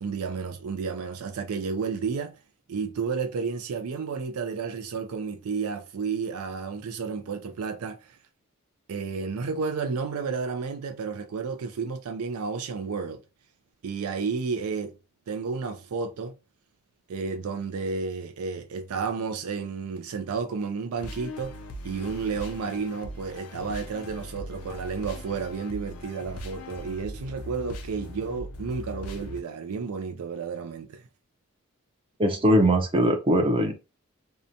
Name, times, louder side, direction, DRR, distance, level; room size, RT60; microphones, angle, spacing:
voice 1, 0.0-2.4 2.7-8.2 8.9-13.2 13.8-15.0 15.3-16.3 17.1-31.0, right 5 dB, 85° right, 0.4 m, -32 dB
sound 1, 21.0-29.4, left 1 dB, 85° left, 0.5 m, -40 dB
voice 2, 32.2-33.7, equal, 25° right, 0.5 m, -21 dB
2.8 x 2.1 x 2.5 m
head